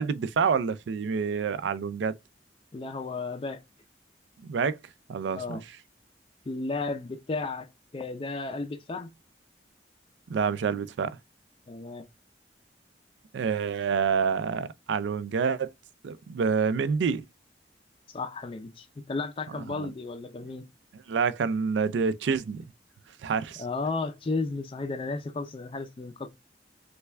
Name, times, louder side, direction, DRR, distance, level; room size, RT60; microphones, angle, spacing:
voice 1, 0.0-2.2 4.4-4.8 5.1-5.6 10.3-11.2 13.3-15.7 16.0-17.3 19.5-19.9 20.9-22.7 23.2-23.6, right 5 dB, 90° right, 0.4 m, -27 dB
voice 2, 2.7-3.6 5.3-5.6 6.5-7.7 7.9-9.1 11.7-12.1 18.1-20.6 23.6-26.3, left 3 dB, 30° left, 0.4 m, -33 dB
3.3 x 2.2 x 3.2 m
head